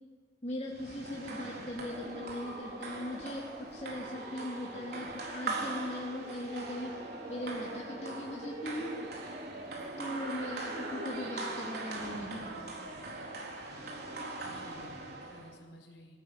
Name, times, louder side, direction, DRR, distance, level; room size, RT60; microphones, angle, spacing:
voice 1, 0.4-6.9 7.3-9.0 10.0-12.9, left 1 dB, 35° left, -3 dB, 3.1 m, -40 dB
sound 1, 0.7-15.5, right 2 dB, 60° right, 4.3 m, -41 dB
sound 2, 1.8-11.4, right 1 dB, 25° right, 1.0 m, -48 dB
voice 2, 14.4-16.2, left 1 dB, 65° left, 2 dB, 5.2 m, -54 dB
21.0 x 17.5 x 9.2 m, 1.5 s
head